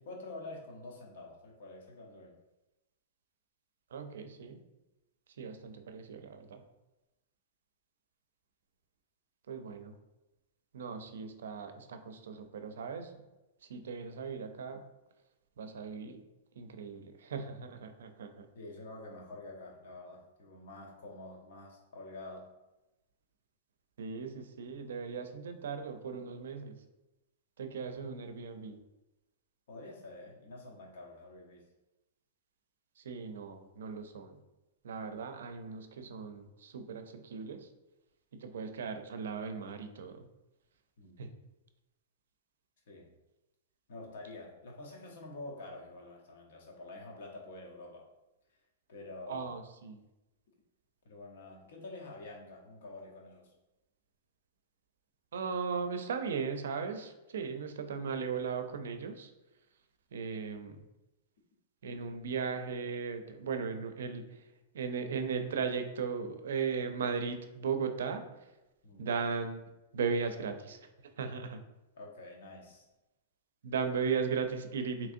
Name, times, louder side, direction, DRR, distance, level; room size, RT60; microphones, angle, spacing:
voice 1, 0.0-2.3 18.5-22.5 29.7-31.7 41.0-41.2 42.9-43.1 43.9-48.1 48.9-49.5 51.0-53.5 68.8-69.1 71.9-72.9, left 2 dB, 70° left, 0 dB, 0.8 m, -47 dB
voice 2, 3.9-4.6 5.4-6.6 9.5-9.9 10.7-13.1 13.7-14.8 15.6-16.2 16.6-18.5 24.0-26.8 27.6-28.8 33.0-34.4 34.8-37.7 38.3-40.2 41.2-41.3 49.3-50.0 55.3-59.3 60.1-60.7 61.8-64.4 64.7-68.2 69.0-69.6 69.9-70.8 71.2-71.6 73.6-75.1, right 5 dB, 85° right, 7 dB, 0.4 m, -37 dB
3.5 x 2.9 x 2.5 m, 0.99 s
supercardioid pair, 160°, 0 cm